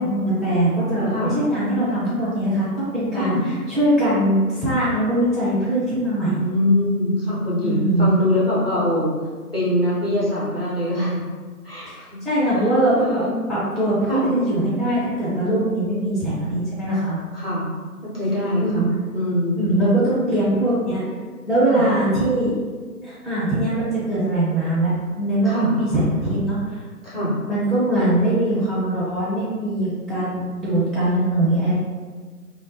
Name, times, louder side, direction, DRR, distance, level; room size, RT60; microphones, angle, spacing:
voice 1, 0.0-6.4 7.6-8.1 11.9-13.2 13.5-17.2 18.6-18.8 19.6-21.0 21.5-22.6 23.0-26.8 27.5-31.7, right 1 dB, ahead, -11 dB, 0.4 m, -21 dB
voice 2, 6.2-9.1 9.5-11.2 11.6-12.2 12.6-13.3 14.1-14.3 17.3-17.7 18.1-18.9 19.1-19.6 21.7-21.8 25.4-25.7 27.0-27.4, left 1 dB, 40° left, -9 dB, 0.7 m, -23 dB
2.5 x 2.1 x 2.8 m, 1.5 s
figure-of-eight pair, 175°, 47 cm